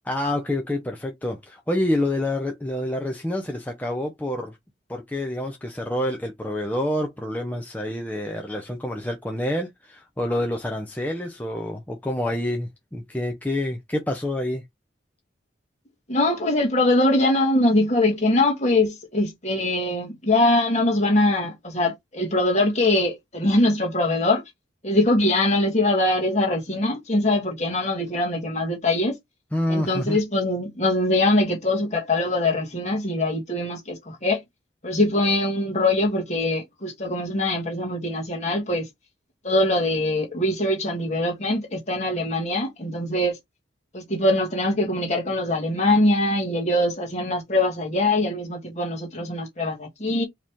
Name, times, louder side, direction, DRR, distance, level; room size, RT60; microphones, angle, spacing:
voice 1, 0.0-4.6 4.9-14.6 29.5-30.2, left 1 dB, 10° left, 0.7 m, -27 dB
voice 2, 16.1-24.4 24.8-29.1 29.7-34.4 34.8-38.9 39.4-43.4 43.9-50.3, left 1 dB, 35° left, 1.6 m, -22 dB
4.7 x 3.1 x 3.6 m
head